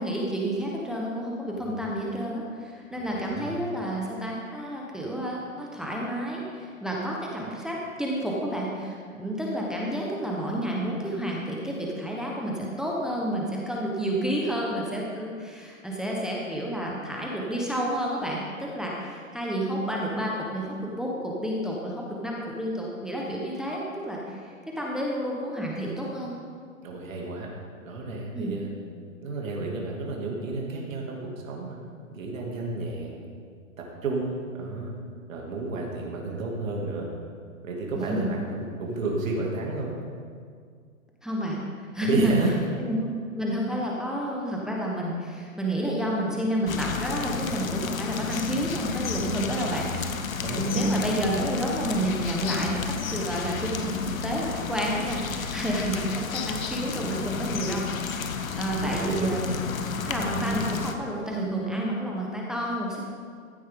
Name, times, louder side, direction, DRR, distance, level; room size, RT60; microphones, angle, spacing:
voice 1, 0.0-26.3 28.3-28.6 37.9-38.3 41.2-42.3 42.8-49.9 50.6-59.6 60.0-63.0, right 1 dB, ahead, -3 dB, 1.2 m, -30 dB
voice 2, 2.9-3.5 26.8-27.5 27.8-28.7 29.2-31.8 32.1-33.2 33.8-34.9 35.3-37.1 37.6-39.9 42.0-42.5 50.4-50.9 58.8-59.3, right 3 dB, 70° right, -2 dB, 2.7 m, -31 dB
sound 1, 46.7-60.9, left 5 dB, 75° left, 1.2 m, -32 dB
15.0 x 9.3 x 3.9 m, 2.1 s
hypercardioid pair, 130°, 41 cm